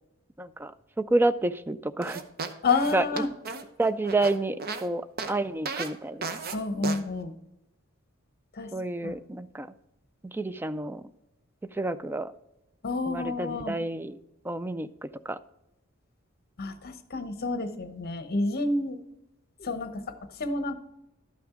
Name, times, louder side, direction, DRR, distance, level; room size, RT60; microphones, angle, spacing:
voice 1, 0.4-0.7 1.0-2.2 2.9-3.0 3.8-4.6 4.8-6.3 8.7-9.7 10.2-11.0 11.8-12.3 13.1-14.2 14.4-15.4, right 2 dB, 10° right, 13 dB, 0.3 m, -29 dB
sound 1, 2.0-4.9 5.2-5.3 5.7-5.9 6.2-6.6 6.8-7.0, right 4 dB, 50° right, 0.8 m, -34 dB
voice 2, 2.6-3.3 6.5-7.4 8.5-8.7 9.0-9.2 12.8-13.8 16.6-19.0 19.6-20.7, left 3 dB, 50° left, 9 dB, 0.9 m, -29 dB
12.0 x 6.0 x 3.7 m, 0.89 s
head